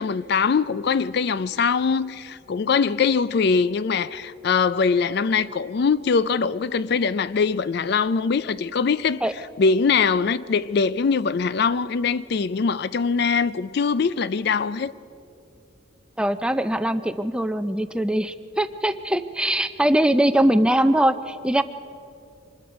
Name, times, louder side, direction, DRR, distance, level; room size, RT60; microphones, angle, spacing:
voice 1, 0.0-9.2 9.6-14.9, left 5 dB, 55° left, 0.4 m, -22 dB
voice 2, 16.2-21.6, right 1 dB, 5° right, 0.5 m, -21 dB
25.0 x 21.0 x 5.1 m
head